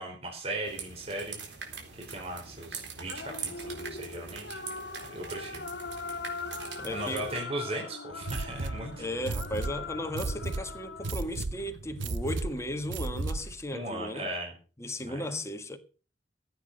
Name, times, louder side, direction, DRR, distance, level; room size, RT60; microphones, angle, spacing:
voice 1, 0.0-1.4 2.1-4.6 5.1-5.6 6.9-9.1 13.7-14.5 15.0-15.4, right 1 dB, 35° right, 4.2 m, -37 dB
sound 1, 0.6-7.4, right 6 dB, 70° right, 4.0 m, -43 dB
sound 2, 3.1-11.1, left 4 dB, 70° left, 1.5 m, -41 dB
voice 2, 6.8-7.3 9.0-14.3 14.8-15.8, left 1 dB, 15° left, 1.5 m, -36 dB
sound 3, 8.2-13.6, right 3 dB, 90° right, 0.8 m, -35 dB
15.0 x 8.7 x 6.4 m
head